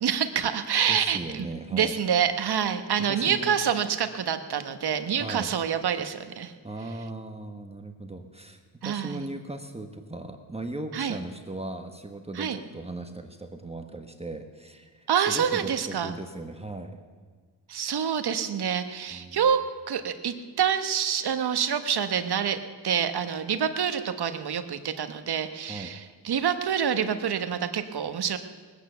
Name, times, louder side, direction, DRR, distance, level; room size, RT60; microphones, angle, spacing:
voice 1, 0.0-6.5 8.8-9.3 10.9-11.2 12.4-12.6 15.1-16.1 17.7-19.6 19.9-28.4, right 8 dB, 60° right, 9 dB, 1.2 m, -27 dB
voice 2, 0.9-2.0 3.1-3.6 5.1-5.5 6.6-17.0 17.8-18.0 19.1-19.5 25.7-25.9, right 2 dB, 15° right, 5 dB, 1.3 m, -38 dB
20.0 x 9.2 x 6.8 m, 1.5 s
cardioid pair, 80°, 44 cm